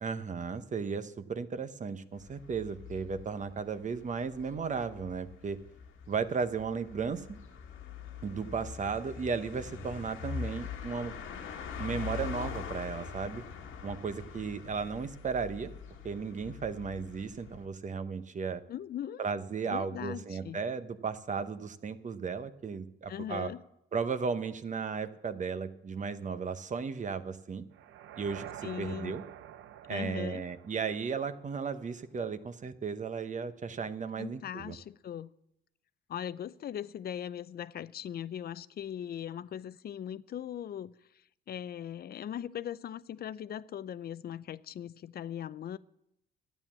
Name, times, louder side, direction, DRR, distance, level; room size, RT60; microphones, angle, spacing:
voice 1, 0.0-5.6 6.1-7.4 8.2-11.1 11.8-13.4 13.8-15.7 16.0-18.6 19.2-23.5 23.9-27.6 28.2-29.2 29.9-34.8, right 5 dB, 40° right, 0.9 m, -35 dB
sound 1, 2.2-17.7, left 6 dB, 90° left, 1.5 m, -43 dB
voice 2, 18.7-19.2 19.7-20.6 23.1-23.6 28.6-29.2 29.9-30.4 34.2-35.3 36.1-40.9 41.5-45.8, left 10 dB, 50° left, 0.5 m, -39 dB
sound 2, 27.7-31.8, right 11 dB, 75° right, 0.6 m, -48 dB
12.5 x 9.2 x 7.3 m
cardioid pair, 90°, 20 cm